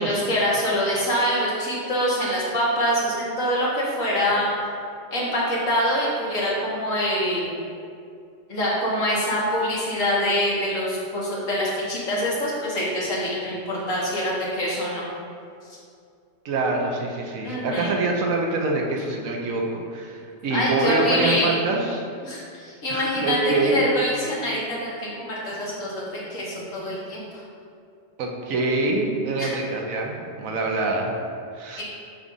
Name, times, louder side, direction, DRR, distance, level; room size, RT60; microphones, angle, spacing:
voice 1, 0.0-4.5 5.1-7.5 8.5-15.1 15.7-15.8 17.4-18.0 20.5-21.8 22.2-23.4 23.6-27.4 29.4-29.5 31.8-31.9, equal, 75° left, -6 dB, 1.8 m, -25 dB
voice 2, 16.4-22.0 22.9-23.8 28.2-31.1 31.5-31.8, right 2 dB, 80° right, 1 dB, 1.2 m, -25 dB
7.3 x 2.5 x 5.3 m, 2.3 s
omnidirectional pair, 1.4 m